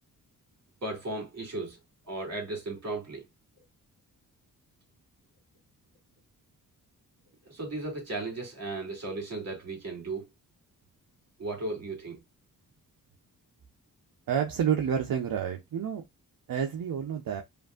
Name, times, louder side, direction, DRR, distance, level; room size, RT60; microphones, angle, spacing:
voice 1, 0.8-1.8 2.1-3.2 7.5-10.2 11.4-12.2, right 2 dB, 45° right, 2.4 m, -35 dB
voice 2, 14.3-16.0 16.5-17.4, right 8 dB, 70° right, 0.7 m, -29 dB
5.0 x 2.6 x 2.3 m
wide cardioid pair, 95°, 35 cm